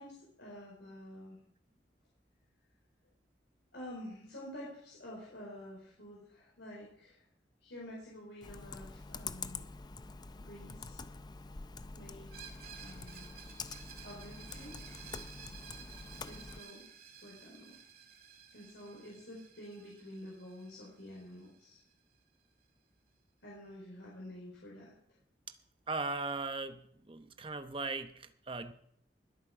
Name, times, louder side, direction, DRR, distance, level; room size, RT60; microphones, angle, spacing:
voice 1, 0.0-1.4 3.7-7.2 7.6-9.6 10.4-11.0 11.9-12.3 12.8-13.3 14.0-15.0 16.3-16.9 17.2-17.8 18.5-21.8 23.4-24.9, left 1 dB, 85° left, -4 dB, 4.7 m, -49 dB
Computer keyboard, 8.4-16.6, left 4 dB, 25° left, 0.5 m, -46 dB
Screech, 12.3-21.9, right 7 dB, 55° right, 2.4 m, -54 dB
voice 2, 25.9-28.7, right 3 dB, 30° right, 9 dB, 0.8 m, -38 dB
20.5 x 8.7 x 4.9 m, 0.66 s
head